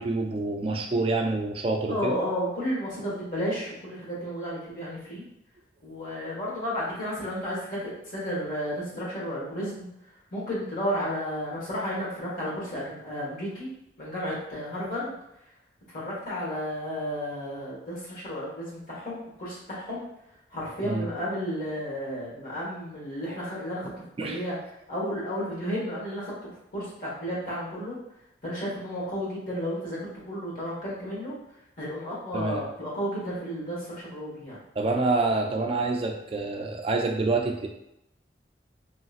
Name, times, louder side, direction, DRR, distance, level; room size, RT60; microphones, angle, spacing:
voice 1, 0.0-2.2 20.8-21.1 24.2-24.4 32.3-32.6 34.8-37.7, right 3 dB, 30° right, 2 dB, 0.3 m, -27 dB
voice 2, 1.9-5.2 5.8-9.9 10.3-13.7 14.0-15.1 15.9-20.1 20.5-24.6 24.9-26.3 26.7-27.9 28.4-31.3 31.8-34.6, equal, 50° left, -8 dB, 1.4 m, -32 dB
3.0 x 2.8 x 2.4 m, 0.82 s
head